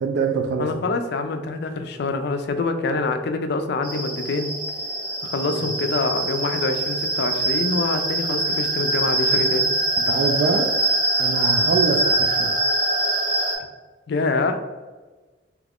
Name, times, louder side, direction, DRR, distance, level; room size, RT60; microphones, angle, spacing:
voice 1, 0.0-0.7 10.0-10.7 11.2-12.5, right 4 dB, 65° right, 3 dB, 0.3 m, -24 dB
voice 2, 0.6-4.5 5.2-9.7 11.6-11.7 14.1-14.7, left 3 dB, 60° left, 7 dB, 0.4 m, -25 dB
sound 1, 3.8-13.6, right 2 dB, 50° right, 0.7 m, -23 dB
2.9 x 2.4 x 3.4 m, 1.3 s
head